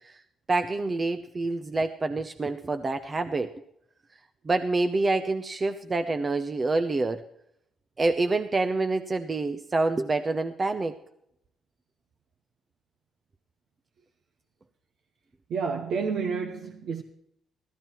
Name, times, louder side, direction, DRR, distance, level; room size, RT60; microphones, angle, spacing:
voice 1, 0.5-3.5 4.4-7.2 8.0-11.0, right 3 dB, 30° right, 0.8 m, -27 dB
voice 2, 15.5-17.0, right 5 dB, 70° right, 1.0 m, -29 dB
14.5 x 14.0 x 4.4 m
cardioid pair, 90°, 0 cm